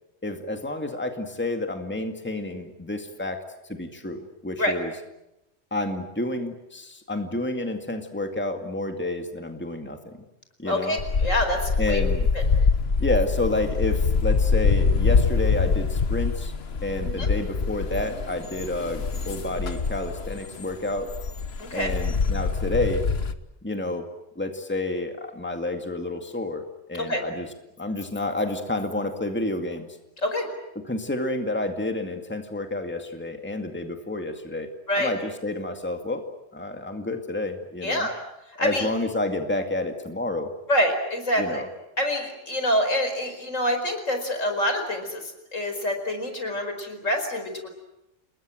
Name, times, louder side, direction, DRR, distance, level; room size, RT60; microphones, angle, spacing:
voice 1, 0.2-3.4 3.7-4.9 5.7-10.2 10.6-11.0 11.8-12.3 13.0-16.5 16.8-21.1 21.7-23.0 23.6-24.1 24.4-26.6 26.9-30.0 30.8-34.7 35.0-36.2 36.5-38.1 38.6-40.5 41.4-41.7, left 2 dB, 10° left, 5 dB, 2.2 m, -29 dB
voice 2, 10.6-12.0 12.3-12.4 17.0-17.3 21.6-21.9 27.0-27.2 30.2-30.5 34.9-35.1 37.8-38.1 38.6-38.9 40.7-41.6 42.0-45.2 45.5-47.7, equal, 80° left, 6 dB, 5.2 m, -26 dB
sound 1, 11.0-23.3, left 5 dB, 55° left, 1.4 m, -24 dB
29.5 x 20.5 x 9.2 m, 0.92 s
omnidirectional pair, 1.3 m